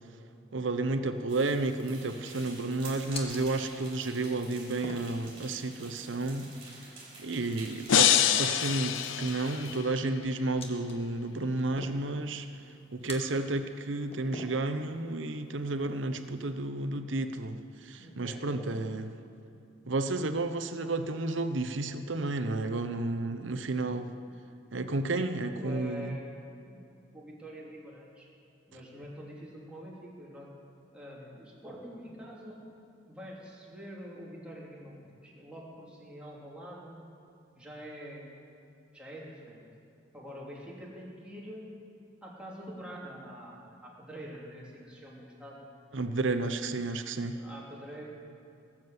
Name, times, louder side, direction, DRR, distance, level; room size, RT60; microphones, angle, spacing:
voice 1, 0.5-6.8 7.2-8.1 8.4-12.5 12.9-19.1 19.9-24.1 24.7-26.2 45.9-47.4, right 2 dB, 70° right, 8 dB, 0.9 m, -32 dB
sound 1, 1.2-16.5, left 2 dB, 30° left, 1.4 m, -50 dB
sound 2, 1.3-9.8, right 2 dB, 30° right, 3.9 m, -48 dB
sound 3, 7.9-10.0, left 9 dB, 75° left, 0.6 m, -25 dB
voice 2, 18.0-18.9 25.3-26.8 27.1-28.3 28.7-30.5 30.9-32.6 33.1-37.1 37.5-38.3 38.9-39.6 40.1-41.6 42.2-45.7 47.3-48.0, equal, 5° right, -5 dB, 2.8 m, -45 dB
18.5 x 7.4 x 7.9 m, 2.7 s
head